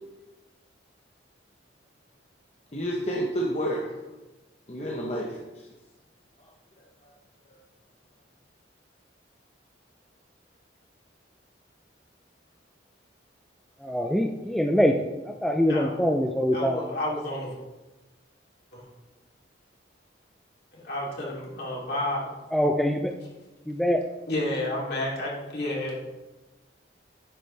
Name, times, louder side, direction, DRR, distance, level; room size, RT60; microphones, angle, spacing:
voice 1, 2.7-3.9 4.7-5.7, equal, 35° left, -2 dB, 1.0 m, -30 dB
voice 2, 13.8-16.8 22.5-23.1 23.7-24.0, equal, ahead, 3 dB, 0.4 m, -24 dB
voice 3, 15.7-16.0 16.5-17.5 18.7-18.8 20.7-22.2 24.3-26.1, left 1 dB, 55° left, -4 dB, 3.1 m, -31 dB
10.5 x 8.2 x 3.4 m, 1.1 s
head